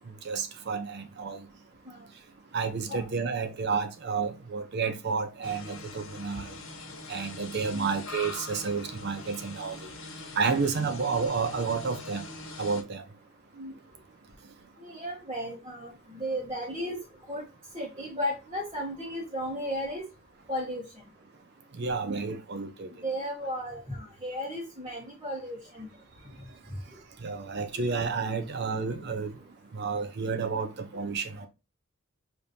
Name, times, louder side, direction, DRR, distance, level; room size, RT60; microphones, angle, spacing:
voice 1, 0.2-1.4 2.5-6.5 7.1-9.8 10.4-12.2 12.6-13.0 21.8-22.9 27.2-29.3 29.7-31.5, right 5 dB, 55° right, 0.6 m, -30 dB
sound 1, 5.4-12.8, left 3 dB, 80° left, 1.2 m, -42 dB
voice 2, 14.8-17.0 17.3-17.4 17.7-20.0 20.5-20.8 23.0-25.9, equal, 25° right, 1.2 m, -34 dB
5.0 x 3.0 x 2.6 m
head